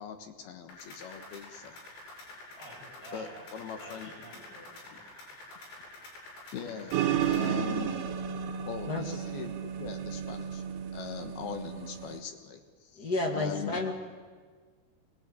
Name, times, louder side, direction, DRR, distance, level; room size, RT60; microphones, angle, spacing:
voice 1, 0.0-1.8 3.1-4.1 6.5-6.9 7.2-8.0 8.7-10.6 10.9-13.1 13.3-13.8, left 7 dB, 65° left, 6 dB, 3.1 m, -41 dB
sound 1, 0.7-7.5, left 2 dB, 90° left, 9.3 m, -48 dB
voice 2, 2.6-3.5 3.8-5.0, right 1 dB, 15° left, -2 dB, 7.0 m, -50 dB
sound 2, 6.9-12.2, right 8 dB, 70° right, 3.2 m, -33 dB
voice 3, 13.0-13.9, left 2 dB, 40° left, 2 dB, 1.5 m, -30 dB
24.0 x 19.0 x 9.1 m, 1.5 s
omnidirectional pair, 5.1 m